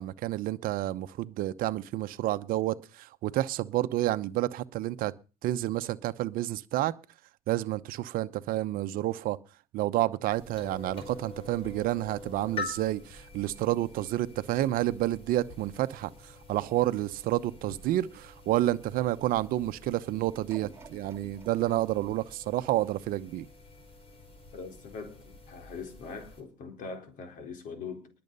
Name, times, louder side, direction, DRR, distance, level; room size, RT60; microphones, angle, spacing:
voice 1, 0.0-5.1 5.4-6.9 7.5-9.4 9.7-16.1 16.5-23.5, right 15 dB, 65° right, 0.9 m, -29 dB
sound 1, 10.3-26.4, left 4 dB, 35° left, 4.9 m, -46 dB
sound 2, 20.5-23.6 24.1-24.2, right 5 dB, 15° right, 2.6 m, -54 dB
voice 2, 24.5-28.1, left 5 dB, 55° left, 4.1 m, -42 dB
20.5 x 7.8 x 5.5 m
cardioid pair, 110°, 16 cm